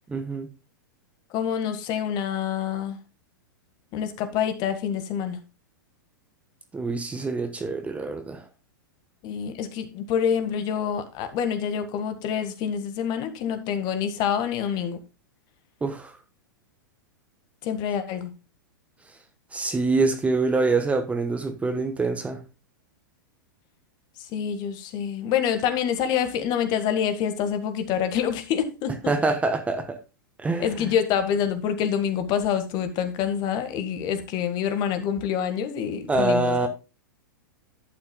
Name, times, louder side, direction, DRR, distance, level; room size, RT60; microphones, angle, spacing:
voice 1, 0.1-0.5 6.7-8.4 15.8-16.2 19.5-22.5 29.1-30.0 30.4-30.9 36.1-36.7, right 3 dB, 10° right, 1.2 m, -25 dB
voice 2, 1.3-3.0 3.9-5.4 9.2-15.0 17.6-18.3 24.3-29.0 30.6-36.7, left 8 dB, 40° left, 1.6 m, -26 dB
11.5 x 8.5 x 2.3 m
figure-of-eight pair, 100°, 11 cm